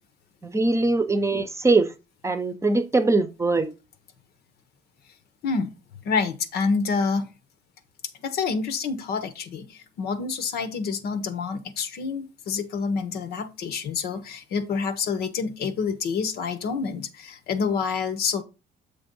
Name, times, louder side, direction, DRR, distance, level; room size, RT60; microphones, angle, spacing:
voice 1, 0.4-1.9 2.2-3.7, right 3 dB, 15° right, 0.8 m, -22 dB
voice 2, 6.0-7.3 8.2-18.4, left 5 dB, 70° left, 1.1 m, -27 dB
6.9 x 3.5 x 5.3 m
cardioid pair, 110°, 17 cm